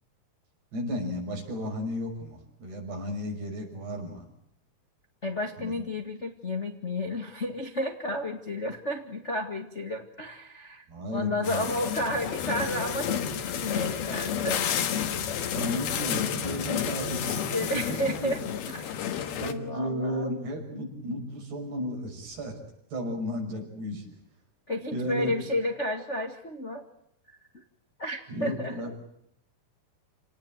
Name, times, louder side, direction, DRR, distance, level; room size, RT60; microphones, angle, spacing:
voice 1, 0.7-4.3 5.6-5.8 10.9-11.7 15.5-18.3 19.4-22.5 22.9-24.0 24.9-25.3 28.3-29.0, equal, 75° right, 1 dB, 8.2 m, -34 dB
voice 2, 5.2-14.6 17.5-19.1 19.4-20.3 24.7-26.8 27.5-27.6 28.0-28.9, left 1 dB, 40° left, 4 dB, 0.9 m, -32 dB
sound 1, 11.4-19.5, left 8 dB, 70° left, 3.4 m, -31 dB
29.0 x 18.5 x 9.0 m, 0.73 s
omnidirectional pair, 4.7 m